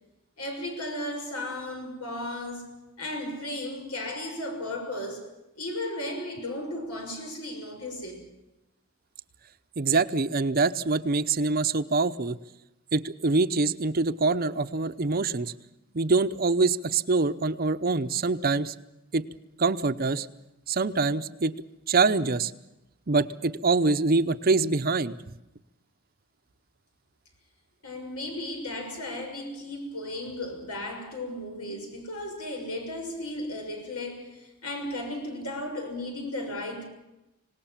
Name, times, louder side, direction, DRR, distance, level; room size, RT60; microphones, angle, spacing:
voice 1, 0.4-8.3 27.8-36.9, left 1 dB, 90° left, 6.6 m, -35 dB
voice 2, 9.8-12.4 12.9-15.5 15.9-18.7 19.1-19.2 19.6-20.3 20.7-21.5 21.9-22.5 23.1-25.2, right 3 dB, 40° right, 0.7 m, -24 dB
26.0 x 18.5 x 7.4 m
head